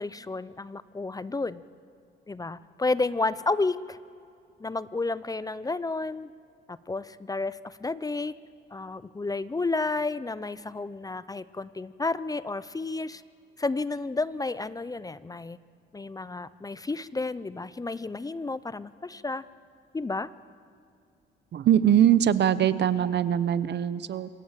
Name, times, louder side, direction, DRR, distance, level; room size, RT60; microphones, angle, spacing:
voice 1, 0.0-1.6 2.3-4.0 4.6-6.3 6.7-8.3 8.7-13.2 13.6-15.6 15.9-19.4 19.9-20.3, left 3 dB, 20° left, 16 dB, 0.5 m, -31 dB
voice 2, 21.5-24.3, right 10 dB, 60° right, 15 dB, 0.9 m, -22 dB
26.5 x 16.5 x 7.4 m, 2.3 s
cardioid pair, 90°, 20 cm